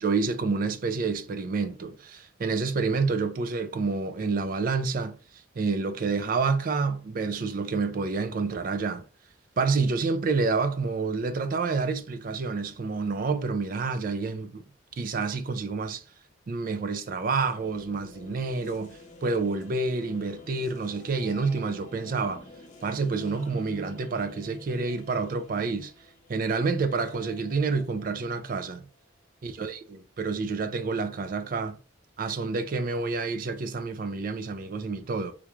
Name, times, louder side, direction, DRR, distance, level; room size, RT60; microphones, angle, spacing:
voice 1, 0.0-5.2 5.6-9.0 9.6-14.6 15.0-16.0 16.5-22.4 22.8-25.9 26.3-28.9 29.4-29.7 30.2-31.8 32.2-35.3, right 4 dB, 45° right, 0.3 m, -28 dB
sound 1, 17.3-29.5, left 2 dB, 35° left, 0.6 m, -50 dB
3.5 x 2.3 x 3.0 m
head